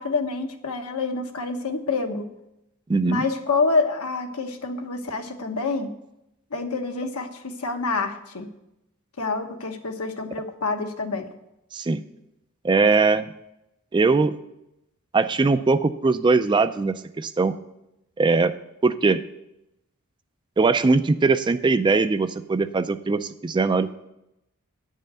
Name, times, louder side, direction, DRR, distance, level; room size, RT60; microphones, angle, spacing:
voice 1, 0.0-2.3 3.0-5.9 6.5-8.5 9.2-11.3, left 3 dB, 80° left, 5 dB, 1.1 m, -27 dB
voice 2, 2.9-3.2 11.7-12.0 12.6-13.3 13.9-14.3 15.1-17.5 18.2-18.5 18.8-19.2 20.6-23.9, right 3 dB, 20° right, 11 dB, 0.3 m, -21 dB
9.3 x 5.5 x 7.5 m, 0.86 s
head